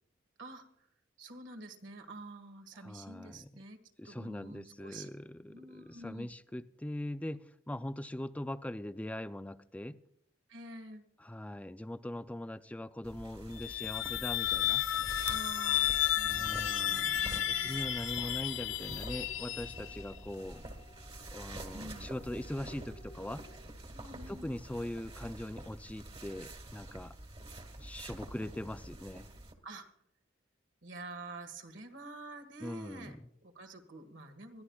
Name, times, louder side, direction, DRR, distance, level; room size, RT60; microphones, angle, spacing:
voice 1, 0.4-0.9 1.2-5.1 5.5-6.3 10.5-11.0 15.3-17.8 21.7-22.1 23.9-24.5 29.6-29.9 30.8-33.2 33.4-34.6, right 2 dB, 70° right, 1.8 m, -48 dB
voice 2, 2.8-3.5 4.0-10.0 11.2-14.8 16.2-20.6 21.3-23.4 24.3-27.1 27.8-29.3 32.6-33.2, left 1 dB, 5° left, 0.4 m, -41 dB
sound 1, 13.0-29.5, right 1 dB, 30° right, 1.6 m, -47 dB
sound 2, 13.5-20.1, left 12 dB, 75° left, 0.6 m, -32 dB
sound 3, 15.6-23.6, left 1 dB, 40° left, 1.2 m, -58 dB
21.0 x 14.5 x 2.4 m
head